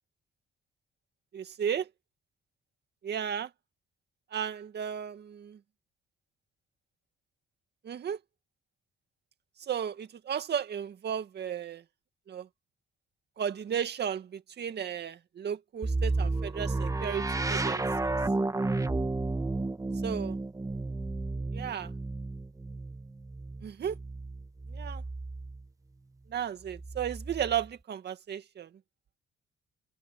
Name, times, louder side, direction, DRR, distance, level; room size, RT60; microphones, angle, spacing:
voice 1, 1.3-1.9 3.0-3.5 4.3-5.6 7.8-8.2 9.7-11.8 12.3-12.5 13.4-18.1 20.0-20.4 21.5-21.9 23.6-24.0 24.7-25.0 26.3-28.7, right 8 dB, 55° right, 2.2 m, -34 dB
sound 1, 15.8-25.6 26.7-27.7, right 2 dB, 15° right, 1.5 m, -32 dB
open air
cardioid pair, 90°, 20 cm